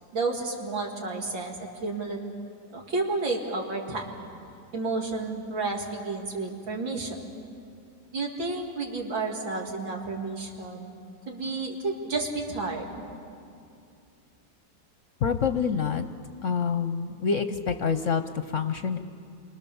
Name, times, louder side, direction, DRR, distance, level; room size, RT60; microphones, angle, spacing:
voice 1, 0.1-2.2 2.7-4.0 4.7-7.3 8.1-10.9 11.3-13.0, right 3 dB, 90° right, 0 dB, 3.6 m, -31 dB
voice 2, 15.2-16.1 16.4-19.0, left 6 dB, 55° left, 9 dB, 0.9 m, -27 dB
28.5 x 24.0 x 7.1 m, 2.5 s
omnidirectional pair, 2.0 m